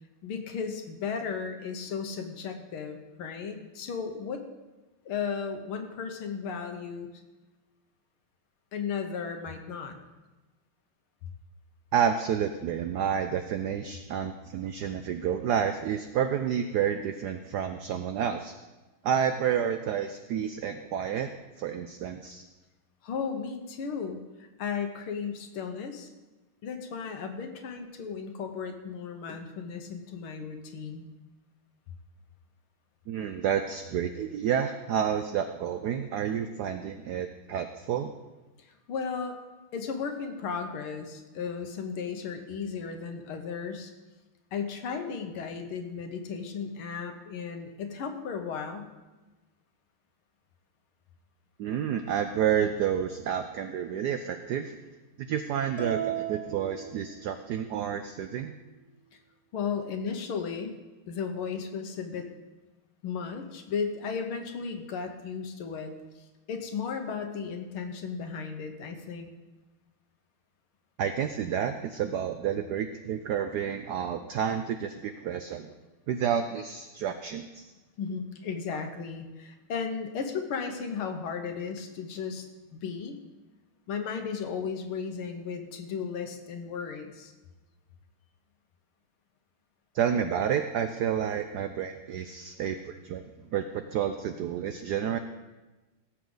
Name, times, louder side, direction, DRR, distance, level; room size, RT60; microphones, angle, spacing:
voice 1, 0.2-4.4 5.1-7.1 8.7-10.0 23.0-24.2 24.6-26.1 26.6-31.1 38.6-39.4 39.7-43.9 44.5-48.9 59.5-60.7 61.1-62.3 63.0-69.3 78.0-82.5 82.7-83.2 83.9-87.3, left 6 dB, 75° left, 6 dB, 1.9 m, -35 dB
voice 2, 11.9-18.5 19.0-21.3 21.6-22.4 33.1-38.1 51.6-54.8 55.2-58.5 71.0-75.7 76.1-77.7 78.7-78.8 89.9-93.2 93.5-95.2, right 8 dB, 85° right, 8 dB, 0.9 m, -30 dB
sound 1, 55.8-57.6, right 10 dB, 30° right, 0.7 m, -35 dB
17.0 x 7.4 x 3.9 m, 1.1 s
omnidirectional pair, 2.4 m